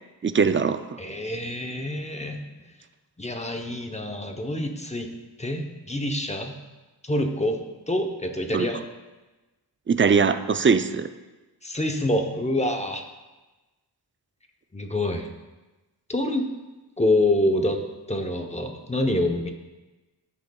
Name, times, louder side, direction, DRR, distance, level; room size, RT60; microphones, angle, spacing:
voice 1, 0.2-1.0 8.5-8.7 9.9-11.1, right 5 dB, 30° right, 10 dB, 0.4 m, -21 dB
voice 2, 1.0-2.4 3.2-5.1 5.4-6.5 7.0-8.8 11.6-13.0 14.7-15.3 16.1-16.5 17.0-17.8 18.1-19.5, left 1 dB, 15° left, 3 dB, 0.8 m, -26 dB
12.5 x 6.6 x 2.3 m, 1.1 s
wide cardioid pair, 90°, 42 cm